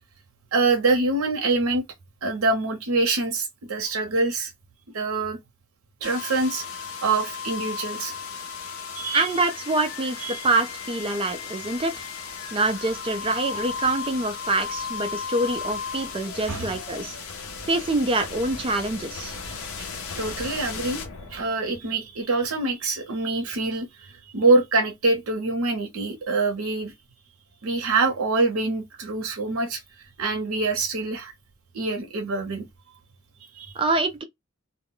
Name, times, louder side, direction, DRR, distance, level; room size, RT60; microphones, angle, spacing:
voice 1, 0.5-1.8 2.2-4.5 4.9-5.4 6.0-6.6 7.0-8.1 8.9-9.2 10.2-10.5 13.5-13.8 16.5-16.7 19.8-19.9 20.2-21.0 21.3-26.9 27.6-31.3 31.7-32.7 33.4-33.7, right 3 dB, 80° right, 0.6 m, -25 dB
sound 1, 6.0-21.9, left 5 dB, 75° left, 0.6 m, -35 dB
voice 2, 9.1-12.1 12.5-17.2 17.7-19.4 33.8-34.2, right 2 dB, 25° right, 0.4 m, -25 dB
2.1 x 2.1 x 3.7 m
head